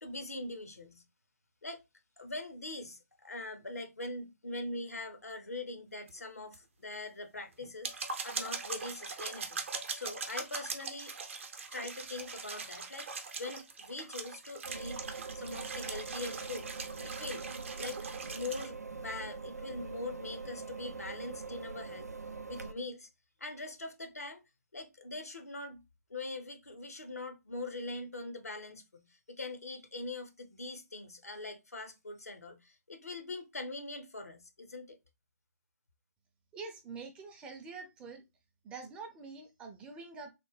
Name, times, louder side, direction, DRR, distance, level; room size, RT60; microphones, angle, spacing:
voice 1, 0.0-1.0 1.6-1.8 2.2-7.9 8.2-9.6 9.9-11.1 11.7-13.1 13.4-15.0 15.3-16.7 17.0-17.4 17.8-22.1 22.5-23.1 23.4-24.4 24.7-25.8 26.1-35.0, left 2 dB, 75° left, 0.7 m, -42 dB
sound 1, 6.1-6.2 6.5-6.6 6.9-7.0 7.6-18.7, right 4 dB, 50° right, 0.7 m, -41 dB
sound 2, 14.6-22.7, right 4 dB, 85° right, 0.4 m, -43 dB
voice 2, 36.5-38.2 38.6-40.3, right 4 dB, 10° right, 0.5 m, -46 dB
3.3 x 2.1 x 3.1 m
figure-of-eight pair, 130°, 8 cm